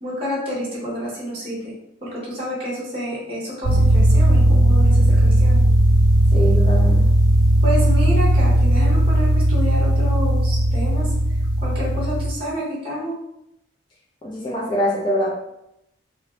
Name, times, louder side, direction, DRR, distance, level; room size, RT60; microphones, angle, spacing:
voice 1, 0.0-1.7 2.0-5.6 7.6-11.1 11.6-13.1, equal, 25° right, -7 dB, 0.7 m, -29 dB
sound 1, 3.6-12.3, right 1 dB, 80° left, 1.2 m, -16 dB
voice 2, 6.3-7.1 14.2-15.3, equal, 25° left, -5 dB, 0.3 m, -23 dB
2.4 x 2.1 x 3.0 m, 0.83 s
head